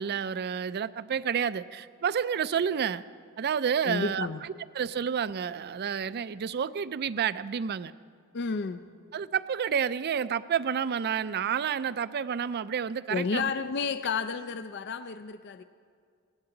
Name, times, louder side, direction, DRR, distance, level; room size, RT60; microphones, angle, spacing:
voice 1, 0.0-3.0 3.4-7.9 9.1-13.5, right 7 dB, 50° right, 16 dB, 0.4 m, -30 dB
voice 2, 3.8-4.4 8.3-8.9 13.1-15.6, left 5 dB, 55° left, 11 dB, 0.5 m, -31 dB
20.0 x 17.5 x 3.9 m, 2.1 s
head